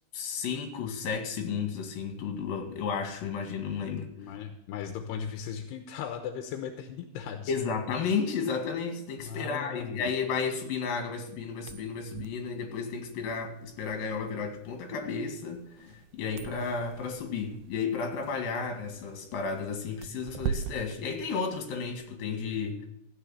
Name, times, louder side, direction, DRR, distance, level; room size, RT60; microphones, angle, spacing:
voice 1, 0.1-4.1 7.5-22.9, left 5 dB, 60° left, 4 dB, 3.7 m, -33 dB
voice 2, 4.2-7.5 9.2-10.1, left 7 dB, 85° left, 6 dB, 3.1 m, -37 dB
sound 1, 11.5-22.0, right 8 dB, 90° right, 2.0 m, -42 dB
15.0 x 6.8 x 8.2 m, 0.74 s
omnidirectional pair, 4.7 m